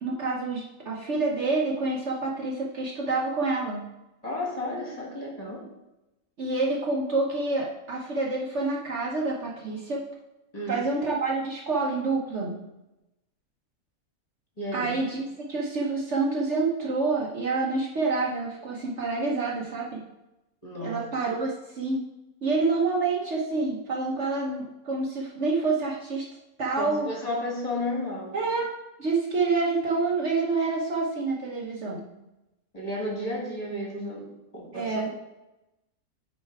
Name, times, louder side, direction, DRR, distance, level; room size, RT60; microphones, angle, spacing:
voice 1, 0.0-3.8 6.4-10.0 10.7-12.6 14.7-20.0 20.8-22.0 22.4-26.3 26.6-27.1 28.3-28.7 29.0-32.0 34.7-35.1, right 3 dB, 55° right, -2 dB, 1.1 m, -27 dB
voice 2, 4.2-5.6 10.5-10.8 14.6-15.0 20.6-21.0 26.8-28.3 32.7-35.2, left 1 dB, 25° left, -3 dB, 1.8 m, -33 dB
9.0 x 3.2 x 4.6 m, 0.96 s
omnidirectional pair, 1.6 m